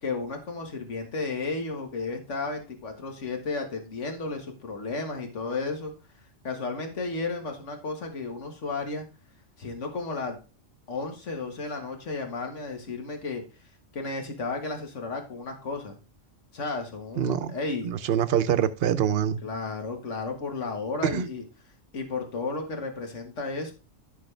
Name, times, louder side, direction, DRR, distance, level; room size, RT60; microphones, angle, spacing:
voice 1, 0.0-5.9 6.4-9.0 9.6-10.4 10.9-13.4 13.9-16.0 16.5-17.9 19.4-21.4 21.9-23.7, left 3 dB, 70° left, 4 dB, 1.9 m, -33 dB
voice 2, 17.2-17.6 17.8-19.4 21.0-21.3, right 9 dB, 60° right, 13 dB, 0.8 m, -25 dB
11.0 x 6.4 x 3.3 m, 0.33 s
omnidirectional pair, 1.3 m